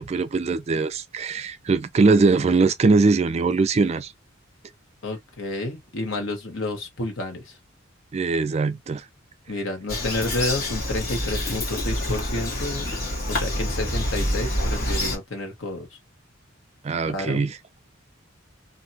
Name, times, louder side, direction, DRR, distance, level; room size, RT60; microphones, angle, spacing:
voice 1, 0.0-4.1 8.1-9.0 16.8-17.6, right 4 dB, 30° right, 0.3 m, -21 dB
voice 2, 5.0-7.5 9.5-12.9 13.3-15.9 17.0-17.4, left 2 dB, 70° left, 1.2 m, -30 dB
Bird vocalization bird call bird song, 9.9-15.2, left 1 dB, 50° left, 1.4 m, -27 dB
2.8 x 2.6 x 2.8 m
head